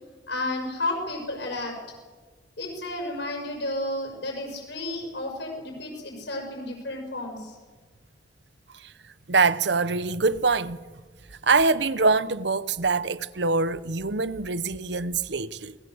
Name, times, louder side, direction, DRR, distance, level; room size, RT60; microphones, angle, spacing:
voice 1, 0.3-1.7 2.6-7.6, left 2 dB, 70° left, 6.1 m, -32 dB
voice 2, 9.3-10.8 11.4-15.8, right 4 dB, 70° right, 0.9 m, -24 dB
28.5 x 20.5 x 7.9 m
head